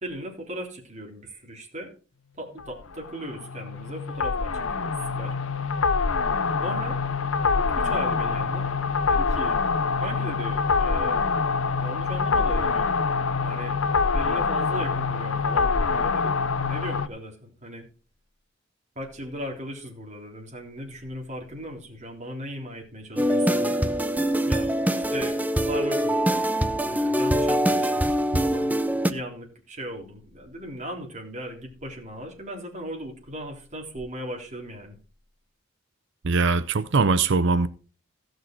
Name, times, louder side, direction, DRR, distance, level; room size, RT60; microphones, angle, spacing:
voice 1, 0.0-1.9 2.4-5.4 6.6-7.0 7.6-8.7 9.1-9.6 10.0-11.3 11.8-12.9 13.4-13.7 14.1-17.9 19.0-23.9 24.5-26.2 26.8-28.1 28.4-28.7 29.0-35.0, equal, 35° right, 3.5 m, -37 dB
sound 1, 2.6-17.1, left 4 dB, 85° left, 0.7 m, -25 dB
sound 2, 23.2-29.1, equal, 10° right, 0.7 m, -23 dB
voice 2, 36.2-37.7, right 4 dB, 65° right, 0.6 m, -21 dB
16.0 x 6.4 x 4.5 m
head